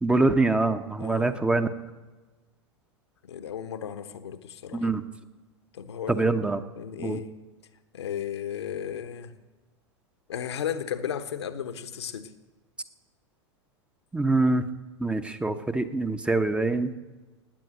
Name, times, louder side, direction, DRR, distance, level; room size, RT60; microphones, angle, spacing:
voice 1, 0.0-1.7 4.7-5.0 6.1-6.6 7.0-7.2 14.1-14.6 15.0-16.9, right 3 dB, 5° right, 9 dB, 0.9 m, -24 dB
voice 2, 1.0-1.4 3.2-4.9 5.7-6.3 6.8-7.3 7.9-9.3 10.3-12.3, left 9 dB, 70° left, 10 dB, 1.2 m, -34 dB
18.0 x 9.4 x 7.9 m, 1.2 s
figure-of-eight pair, 90°, 15 cm